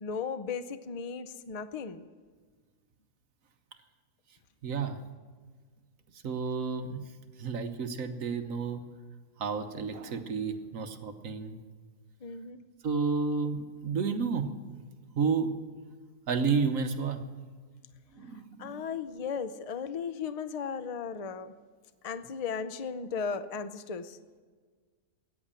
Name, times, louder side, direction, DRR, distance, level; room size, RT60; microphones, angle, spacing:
voice 1, 0.0-2.0 12.2-12.6 18.6-21.5 22.0-24.2, left 6 dB, 75° left, 12 dB, 0.3 m, -36 dB
voice 2, 4.6-5.0 6.2-7.0 7.4-8.8 9.4-11.6 12.8-14.8 15.1-15.5 16.3-17.2 18.2-18.8, right 5 dB, 60° right, 7 dB, 1.3 m, -31 dB
14.0 x 9.8 x 8.8 m, 1.5 s
omnidirectional pair, 1.6 m